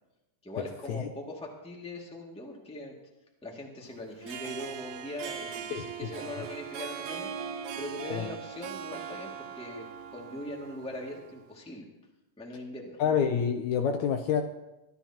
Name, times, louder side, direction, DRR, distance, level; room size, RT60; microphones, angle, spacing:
voice 1, 0.4-2.9 3.4-7.3 7.7-9.9 10.1-11.8 12.4-13.0, left 1 dB, ahead, -1 dB, 1.5 m, -41 dB
Harp, 4.1-11.4, right 7 dB, 75° right, 1.9 m, -40 dB
voice 2, 13.0-14.4, left 7 dB, 75° left, 6 dB, 1.9 m, -27 dB
22.5 x 13.5 x 2.9 m, 0.98 s
omnidirectional pair, 3.7 m